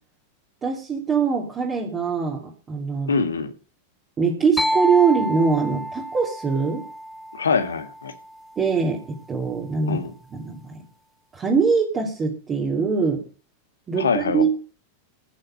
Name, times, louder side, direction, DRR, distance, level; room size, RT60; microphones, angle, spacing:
voice 1, 0.6-3.1 4.2-6.8 8.6-10.0 10.3-10.8 11.3-13.2 13.9-14.5, right 5 dB, 25° right, -3 dB, 3.0 m, -23 dB
voice 2, 3.1-3.5 7.3-8.1 9.9-10.1 14.0-14.5, left 5 dB, 70° left, 10 dB, 1.6 m, -24 dB
sound 1, 4.6-8.3, equal, 5° left, 0.5 m, -28 dB
16.0 x 6.6 x 6.3 m, 0.37 s
figure-of-eight pair, 90°, 0 cm